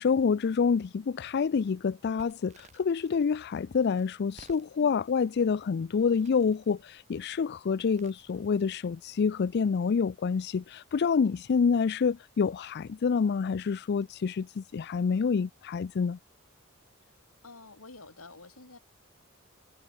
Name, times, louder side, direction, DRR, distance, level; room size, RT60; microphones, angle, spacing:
voice 1, 0.0-16.2, left 5 dB, 50° left, 0.4 m, -27 dB
Crackle, 2.2-9.0, right 2 dB, 35° right, 4.7 m, -60 dB
voice 2, 17.4-18.8, left 3 dB, 85° left, 4.5 m, -50 dB
head